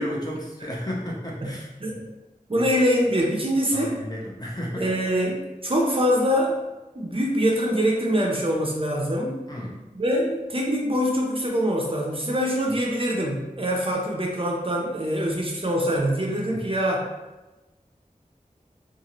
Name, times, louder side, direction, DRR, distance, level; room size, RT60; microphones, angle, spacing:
voice 1, 0.0-2.0 2.5-2.7 3.7-4.9 9.5-9.9 16.5-16.7, equal, 30° left, -4 dB, 0.7 m, -33 dB
voice 2, 1.8-2.1 2.5-4.0 4.8-6.6 7.0-9.4 9.9-17.0, equal, 40° right, -1 dB, 0.5 m, -24 dB
2.6 x 2.4 x 2.9 m, 1.1 s
wide cardioid pair, 50°, 15 cm